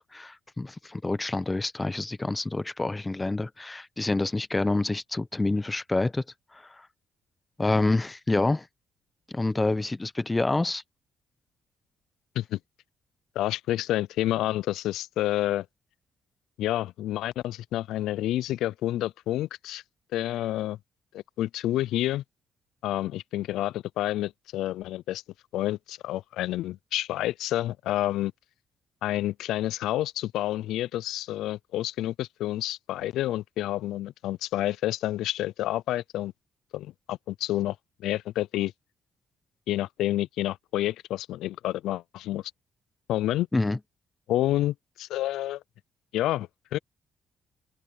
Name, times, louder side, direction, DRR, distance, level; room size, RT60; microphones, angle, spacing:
voice 1, 0.0-6.2 6.5-6.9 7.6-8.7 9.3-10.8 43.5-43.8, left 2 dB, 15° left, 0.8 m, -27 dB
voice 2, 13.4-15.7 16.6-19.8 20.1-20.8 21.1-22.2 22.8-25.2 25.5-28.3 29.0-36.3 36.7-38.7 39.7-42.4 43.1-43.5 44.3-45.6 46.1-46.8, left 14 dB, 85° left, 0.3 m, -29 dB
open air
cardioid pair, 90°, 0 cm